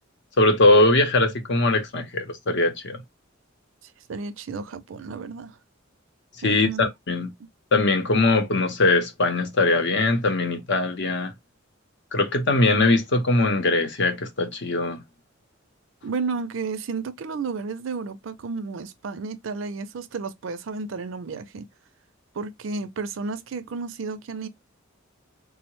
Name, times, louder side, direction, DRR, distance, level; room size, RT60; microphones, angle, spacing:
voice 1, 0.4-3.0 6.4-7.3 7.7-11.3 12.1-15.0, left 2 dB, 65° left, 0.8 m, -21 dB
voice 2, 4.1-5.6 6.4-6.8 7.4-7.5 16.0-21.7 22.3-24.5, right 4 dB, 70° right, 0.5 m, -32 dB
3.6 x 2.1 x 3.0 m
head